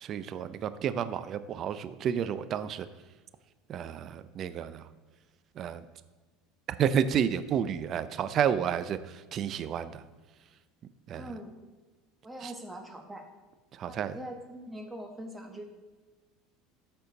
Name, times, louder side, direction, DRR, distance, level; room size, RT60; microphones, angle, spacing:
voice 1, 0.0-2.9 3.7-4.8 5.6-5.8 6.8-10.0 11.1-11.3 12.4-12.5 13.8-14.2, right 8 dB, 45° right, 13 dB, 0.5 m, -30 dB
voice 2, 11.2-11.5 12.2-13.3 13.8-15.6, right 1 dB, 10° right, 3 dB, 1.6 m, -42 dB
13.0 x 4.4 x 4.0 m, 1.3 s
hypercardioid pair, 90°, 0 cm